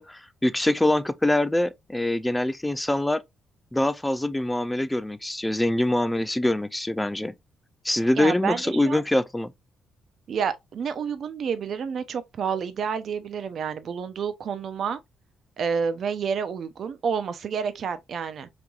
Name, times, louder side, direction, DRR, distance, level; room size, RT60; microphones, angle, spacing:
voice 1, 0.0-3.2 3.7-7.3 7.8-9.5, left 1 dB, 10° left, 0.3 m, -24 dB
voice 2, 8.2-9.0 10.3-15.0 15.6-18.5, right 6 dB, 60° right, 0.5 m, -29 dB
5.0 x 3.0 x 2.3 m
cardioid pair, 90°, 0 cm